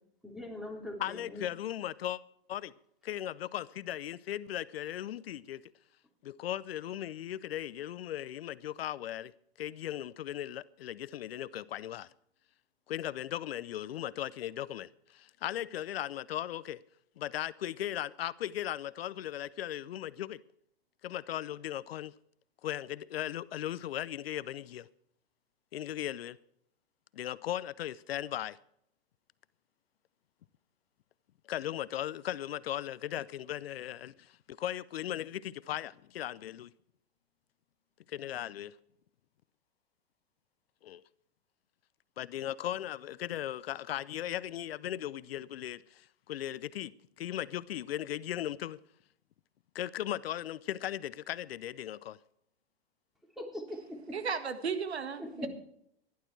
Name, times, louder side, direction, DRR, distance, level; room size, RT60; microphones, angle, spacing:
voice 1, 0.2-1.4 53.4-54.2 55.2-55.5, left 1 dB, ahead, 3.3 m, -41 dB
voice 2, 1.0-2.2 2.5-2.7 3.0-5.6 6.2-9.3 9.6-12.1 12.9-16.8 17.2-20.4 21.0-22.1 22.6-24.9 25.7-26.4 27.1-28.6 31.5-36.7 38.1-38.7 40.8-41.0 42.2-46.9 47.2-48.8 49.7-52.2, left 12 dB, 70° left, 0.7 m, -37 dB
voice 3, 54.1-55.5, right 5 dB, 85° right, 1.8 m, -34 dB
16.0 x 11.5 x 4.7 m
hypercardioid pair, 120°, 31 cm